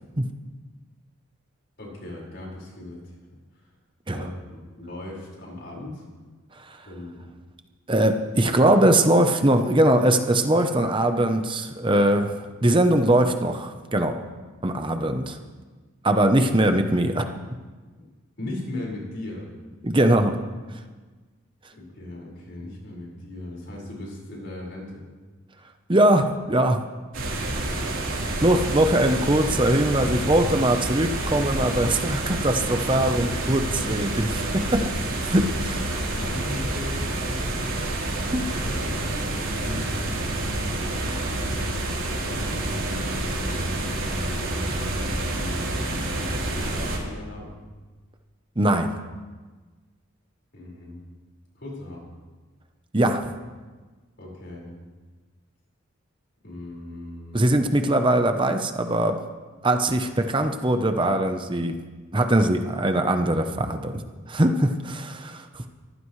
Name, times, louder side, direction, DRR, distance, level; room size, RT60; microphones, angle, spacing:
voice 1, 1.8-3.0 3.5-3.7 4.1-6.0 6.8-7.3 18.0-18.1 18.4-19.5 21.7-25.0 36.1-38.0 38.6-41.5 42.2-47.6 50.5-51.0 51.5-52.2 54.2-54.8 56.4-57.5, left 1 dB, 55° left, -3 dB, 5.2 m, -38 dB
voice 2, 7.9-12.3 12.6-14.2 14.6-15.4 16.0-17.2 19.8-20.4 25.9-26.8 28.4-34.9 35.2-35.8 38.3-38.5 48.6-48.9 52.9-53.3 57.3-59.2 59.6-61.7 62.1-65.6, right 1 dB, 25° right, 6 dB, 0.9 m, -21 dB
sound 1, 27.1-47.0, right 1 dB, 70° right, 3.8 m, -28 dB
23.5 x 15.5 x 3.3 m, 1.3 s
head